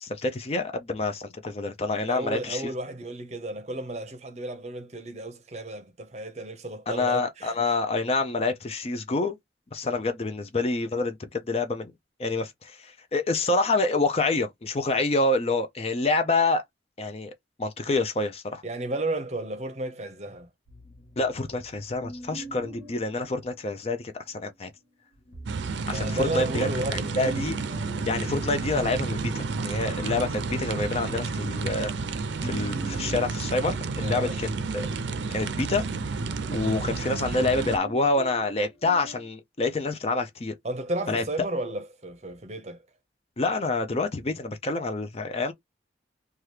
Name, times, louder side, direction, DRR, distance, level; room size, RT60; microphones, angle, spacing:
voice 1, 0.0-2.7 6.9-9.3 9.7-11.9 12.2-16.6 17.0-17.3 17.6-18.6 21.2-24.7 25.9-27.6 28.1-31.9 32.4-34.5 34.7-34.9 35.3-35.8 36.5-40.5 41.1-41.2 43.4-45.5, left 3 dB, 35° left, 0.4 m, -27 dB
voice 2, 1.9-7.5 18.6-20.5 25.8-27.4 34.0-34.4 40.6-42.8, right 1 dB, 35° right, 0.7 m, -33 dB
sound 1, 20.7-24.2 25.1-29.6 30.0-39.3, right 2 dB, 55° left, 0.9 m, -46 dB
sound 2, 25.5-37.8, right 4 dB, 80° right, 0.5 m, -31 dB
2.9 x 2.3 x 3.2 m
head